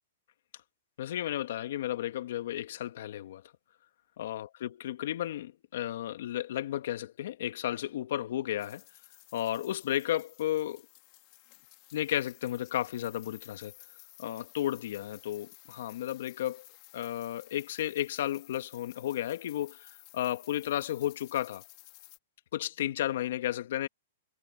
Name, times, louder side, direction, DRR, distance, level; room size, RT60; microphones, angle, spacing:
voice 1, 1.0-3.4 4.2-8.8 9.3-10.9 11.9-13.7 14.2-16.7 16.9-21.6 22.5-23.9, left 12 dB, 65° left, 1.9 m, -33 dB
sound 1, 8.6-22.2, left 25 dB, 40° left, 2.3 m, -55 dB
hypercardioid pair, 140°, 0 cm